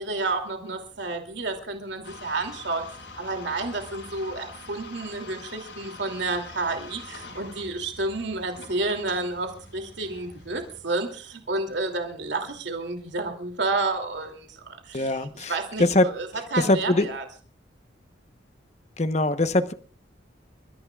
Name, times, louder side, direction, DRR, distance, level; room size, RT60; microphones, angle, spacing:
voice 1, 0.0-2.8 3.2-17.2, right 3 dB, 70° right, 4 dB, 2.8 m, -30 dB
sound 1, 2.0-10.8, left 3 dB, 80° left, 5.5 m, -44 dB
voice 2, 14.9-15.5 15.8-16.1 16.6-17.1 19.0-19.7, left 2 dB, 35° left, 11 dB, 1.0 m, -22 dB
30.0 x 14.5 x 2.4 m, 0.37 s
head